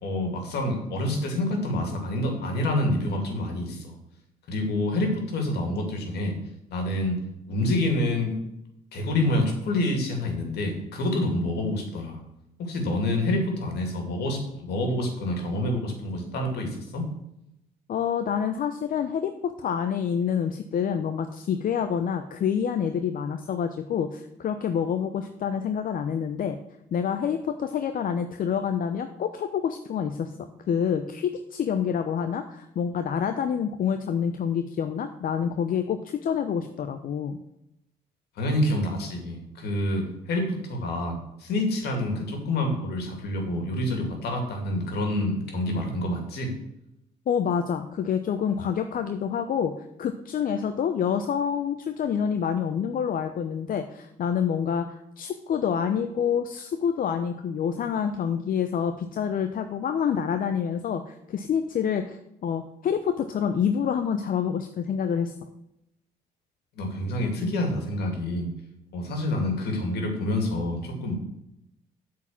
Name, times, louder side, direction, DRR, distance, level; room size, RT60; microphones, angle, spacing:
voice 1, 0.0-3.9 4.5-6.3 6.7-7.2 7.5-8.4 8.9-12.2 12.6-17.1 38.4-46.5 66.8-68.5 68.9-71.1, left 1 dB, 70° left, 3 dB, 2.6 m, -27 dB
voice 2, 17.9-26.6 26.9-30.3 30.7-37.4 47.3-65.3, left 7 dB, 55° left, 8 dB, 0.7 m, -27 dB
8.1 x 4.8 x 7.4 m, 0.83 s
hypercardioid pair, 60°, 18 cm